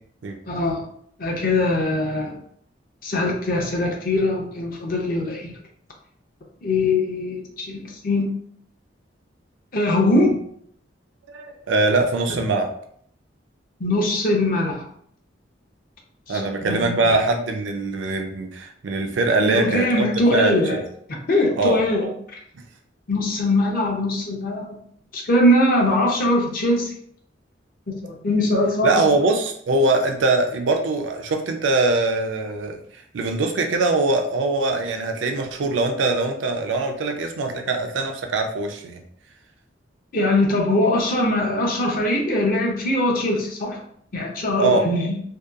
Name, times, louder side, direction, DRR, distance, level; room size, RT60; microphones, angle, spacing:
voice 1, 0.5-0.8 1.2-2.4 3.0-5.5 6.6-8.3 9.7-10.4 13.8-14.8 16.3-17.1 19.4-20.8 21.1-22.1 23.1-24.8 25.1-26.9 28.0-28.9 40.1-43.8 44.1-45.2, left 1 dB, 50° left, 0 dB, 0.6 m, -21 dB
voice 2, 11.3-12.7 16.3-20.8 21.6-21.8 28.8-32.8 33.1-39.0 44.6-44.9, right 2 dB, 85° right, 4 dB, 0.4 m, -22 dB
2.7 x 2.2 x 2.3 m, 0.64 s
head